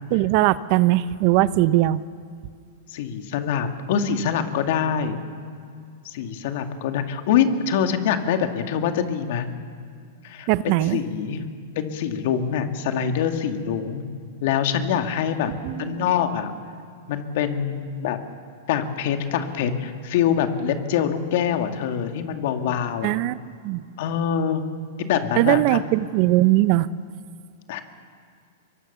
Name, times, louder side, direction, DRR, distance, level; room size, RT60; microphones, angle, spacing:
voice 1, 0.1-2.0 10.5-11.0 15.6-16.0 23.0-23.4 23.6-23.8 25.4-26.9, right 16 dB, 50° right, 17 dB, 0.7 m, -20 dB
voice 2, 2.9-5.2 6.0-9.5 10.2-11.4 11.7-14.0 14.4-15.5 15.8-16.5 17.1-18.2 18.7-23.2 24.0-24.6 25.0-25.9 27.7-27.8, left 8 dB, 60° left, 6 dB, 2.3 m, -24 dB
25.0 x 22.5 x 7.0 m, 2.2 s
hypercardioid pair, 115°, 0 cm